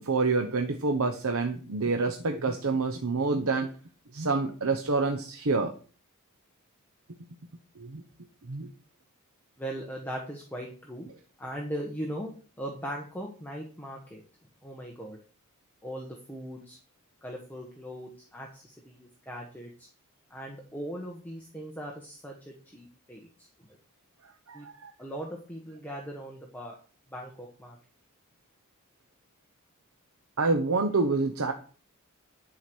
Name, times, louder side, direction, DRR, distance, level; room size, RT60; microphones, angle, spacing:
voice 1, 0.0-3.7 4.1-5.7 7.8-8.0 8.5-8.7 24.5-24.9 30.4-31.5, right 3 dB, 75° right, 5 dB, 0.9 m, -27 dB
voice 2, 9.6-11.1 11.4-14.2 14.6-15.2 15.8-16.8 17.2-19.9 20.3-23.5 24.5-24.7 25.0-26.8 27.1-27.8, equal, 10° left, -1 dB, 1.3 m, -39 dB
11.5 x 4.8 x 6.2 m, 0.40 s
head